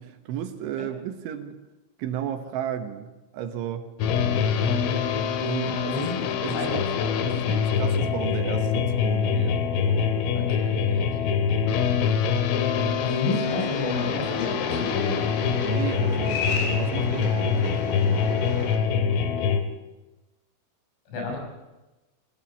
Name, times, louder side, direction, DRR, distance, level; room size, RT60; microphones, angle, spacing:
voice 1, 0.0-1.5 2.0-3.9 5.4-6.8 7.3-10.1 15.6-18.3, right 9 dB, 75° right, 7 dB, 3.5 m, -34 dB
sound 1, 4.0-19.6, left 6 dB, 85° left, 4.1 m, -25 dB
voice 2, 6.5-7.6 10.4-11.7 13.0-15.5 21.1-21.4, left 3 dB, 65° left, 2 dB, 8.0 m, -32 dB
sound 2, 13.4-18.8, left 3 dB, 50° left, 4.8 m, -33 dB
22.5 x 16.0 x 8.5 m, 1.1 s
omnidirectional pair, 5.8 m